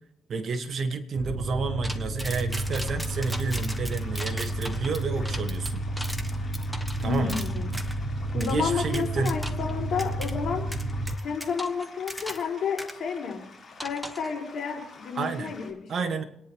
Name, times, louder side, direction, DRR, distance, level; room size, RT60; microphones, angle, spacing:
voice 1, 0.3-5.8 7.0-7.4 8.3-9.4 15.1-15.5 15.9-16.2, right 4 dB, 55° right, 6 dB, 1.5 m, -30 dB
sound 1, 1.2-11.1, right 1 dB, 30° right, 1.5 m, -31 dB
sound 2, 1.8-8.0 8.4-8.6 8.9-9.7 10.0-10.3 10.7-12.5 12.8-12.9 13.8-14.3, equal, ahead, 1.3 m, -38 dB
sound 3, 2.5-15.7, left 4 dB, 40° left, 4.0 m, -50 dB
voice 2, 7.0-7.7 8.3-10.7 11.2-13.4 13.8-16.3, left 6 dB, 60° left, -2 dB, 4.9 m, -31 dB
30.0 x 10.0 x 3.1 m, 0.80 s
cardioid pair, 90°, 0 cm